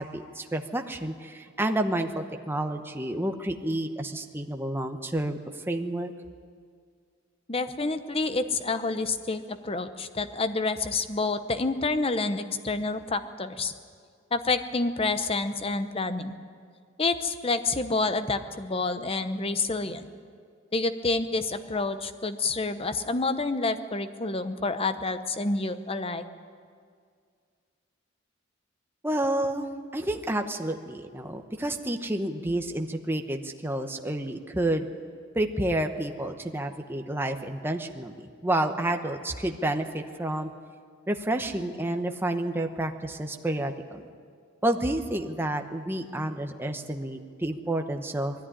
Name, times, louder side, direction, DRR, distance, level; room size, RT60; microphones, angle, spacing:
voice 1, 0.0-5.4 5.7-6.1 29.0-34.9 35.3-38.1 38.4-40.5 41.1-44.0 44.6-48.3, right 1 dB, 10° right, 5 dB, 0.9 m, -29 dB
voice 2, 7.5-13.7 14.3-16.4 17.0-20.1 20.7-26.2, left 3 dB, 30° left, 10 dB, 0.9 m, -28 dB
20.5 x 14.0 x 9.9 m, 2.1 s
head